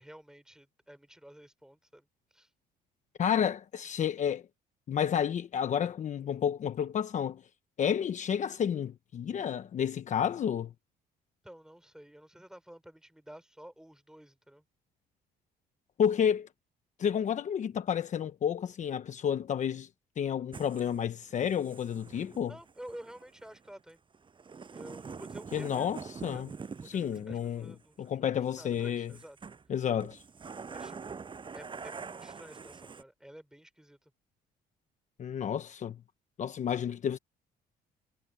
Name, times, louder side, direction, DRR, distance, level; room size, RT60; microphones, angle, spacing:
voice 1, 0.0-2.1 2.3-2.5 11.4-14.6 22.5-24.0 24.7-25.9 26.3-29.4 30.6-34.1, right 1 dB, 5° right, 4.1 m, -51 dB
voice 2, 3.2-4.4 4.9-7.4 7.8-10.7 16.0-16.5 17.0-19.9 20.2-22.5 25.5-26.5 26.8-29.1 29.7-30.2 35.2-36.0 36.4-37.2, left 8 dB, 45° left, 1.1 m, -31 dB
sound 1, 20.5-28.1 28.5-29.7 30.0-33.0, right 5 dB, 30° right, 7.5 m, -45 dB
cardioid pair, 110°, 17 cm